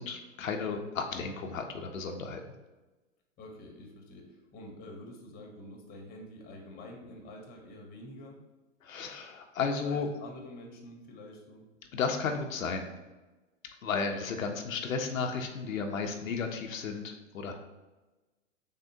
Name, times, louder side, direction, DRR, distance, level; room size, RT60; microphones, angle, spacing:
voice 1, 0.0-2.4 8.8-10.1 11.9-12.8 13.8-17.5, left 5 dB, 80° left, 4 dB, 0.6 m, -33 dB
voice 2, 3.4-8.4 9.8-11.7 14.0-14.3, left 1 dB, 25° left, 1 dB, 0.9 m, -47 dB
6.2 x 2.1 x 2.7 m, 1.1 s
hypercardioid pair, 110°, 39 cm